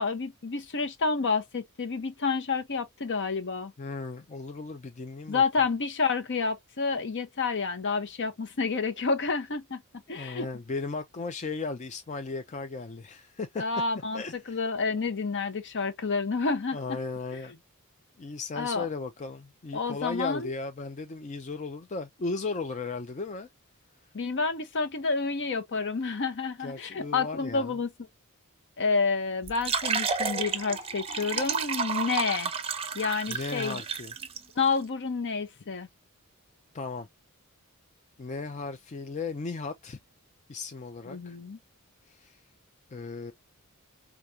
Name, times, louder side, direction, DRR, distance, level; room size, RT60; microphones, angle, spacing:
voice 1, 0.0-3.7 5.3-9.8 10.1-10.5 13.6-14.2 14.5-17.0 18.6-18.9 19.7-20.5 24.1-27.9 28.8-32.5 32.9-33.8 34.6-35.9 41.1-41.6, left 4 dB, 55° left, 0.8 m, -29 dB
voice 2, 3.8-5.4 10.1-13.6 14.1-14.6 16.7-17.6 18.2-23.5 26.6-27.8 33.3-34.1 36.7-37.1 38.2-40.0 40.5-41.4 42.1-42.4 42.9-43.3, left 3 dB, 30° left, 0.4 m, -36 dB
sound 1, 29.4-34.4, right 5 dB, 25° right, 0.7 m, -31 dB
4.8 x 2.3 x 2.7 m
head